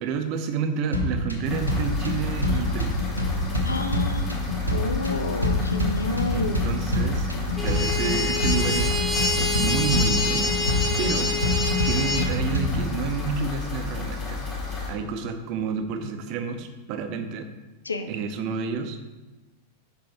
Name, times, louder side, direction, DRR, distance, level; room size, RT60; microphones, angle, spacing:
voice 1, 0.0-2.9 6.3-7.3 7.6-10.5 11.0-11.3 11.8-14.4 14.9-17.5 18.1-19.0, right 6 dB, 40° right, 8 dB, 0.6 m, -30 dB
sound 1, 0.9-12.9, left 1 dB, 85° right, 0.9 m, -27 dB
sound 2, 1.5-14.9, left 4 dB, 25° left, 1.8 m, -32 dB
voice 2, 3.6-4.3 4.7-6.7 10.7-11.1 17.8-18.1, left 3 dB, 80° left, 7 dB, 0.6 m, -30 dB
sound 3, 7.6-12.3, left 3 dB, 5° left, 1.3 m, -26 dB
5.3 x 5.2 x 4.3 m, 1.1 s
figure-of-eight pair, 90°, 0 cm